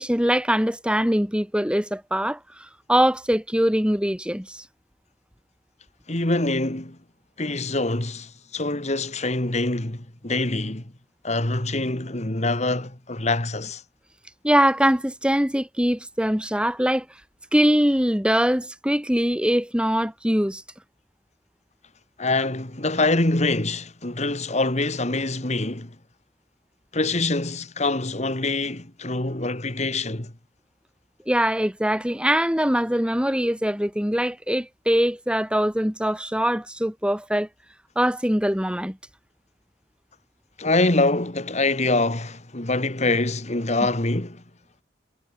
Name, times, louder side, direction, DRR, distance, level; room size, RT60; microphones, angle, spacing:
voice 1, 0.0-2.4 2.9-4.6 14.4-17.0 17.5-20.6 31.3-37.5 38.0-39.0, equal, 5° right, 4.7 m, -22 dB
voice 2, 6.1-7.0 7.4-10.8 11.2-13.8 22.2-26.0 26.9-30.3 40.6-44.4, left 2 dB, 40° left, 2.3 m, -25 dB
head